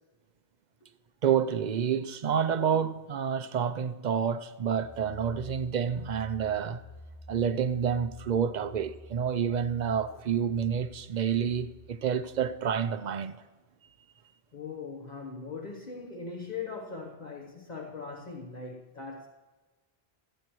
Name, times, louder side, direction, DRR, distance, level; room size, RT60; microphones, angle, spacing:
voice 1, 1.2-6.8 7.3-13.3, right 7 dB, 55° right, 0.6 m, -29 dB
sound 1, 4.7-12.5, left 1 dB, 90° left, 2.6 m, -50 dB
voice 2, 14.5-19.3, left 4 dB, 45° left, 1.2 m, -40 dB
25.5 x 8.9 x 3.1 m
omnidirectional pair, 1.1 m